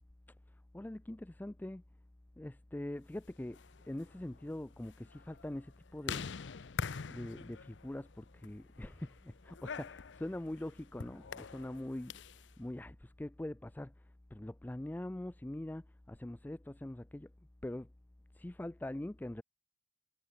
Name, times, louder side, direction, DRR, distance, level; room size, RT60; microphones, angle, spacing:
voice 1, 0.7-1.8 2.4-3.6 3.9-6.3 7.1-12.2 12.6-13.9 14.3-17.3 17.6-17.9 18.3-19.4, left 1 dB, 10° left, 0.3 m, -43 dB
sound 1, 3.4-12.5, left 5 dB, 75° left, 0.6 m, -45 dB
head